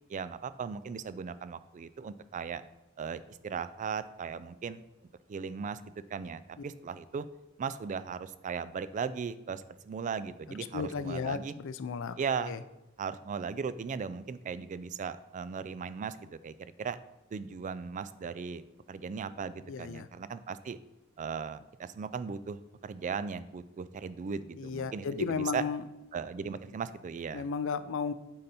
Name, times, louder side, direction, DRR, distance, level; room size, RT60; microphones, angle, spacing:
voice 1, 0.1-2.6 3.0-4.8 5.3-5.8 6.1-7.2 7.6-11.5 12.2-12.6 13.0-17.0 17.3-20.8 21.2-25.6 26.1-27.4, right 6 dB, 35° right, 14 dB, 0.3 m, -37 dB
voice 2, 10.7-12.2 12.4-12.6 19.7-20.1 24.6-25.8 27.3-28.1, left 5 dB, 65° left, 13 dB, 0.4 m, -34 dB
8.7 x 4.1 x 4.2 m, 1.0 s
head